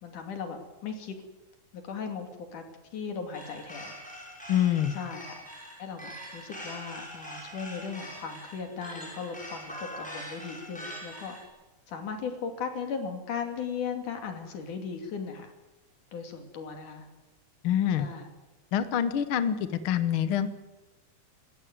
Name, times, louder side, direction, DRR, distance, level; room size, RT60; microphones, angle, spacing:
voice 1, 0.0-1.1 1.7-2.6 2.9-3.9 4.9-5.5 5.8-11.4 11.9-15.5 16.1-17.1 18.0-18.3, left 6 dB, 75° left, 5 dB, 4.2 m, -37 dB
sound 1, 3.3-11.5, equal, ahead, 6.6 m, -43 dB
voice 2, 4.5-5.0 17.6-18.1 18.7-20.5, left 10 dB, 55° left, 11 dB, 1.6 m, -26 dB
27.5 x 14.0 x 9.5 m, 1.2 s
omnidirectional pair, 3.6 m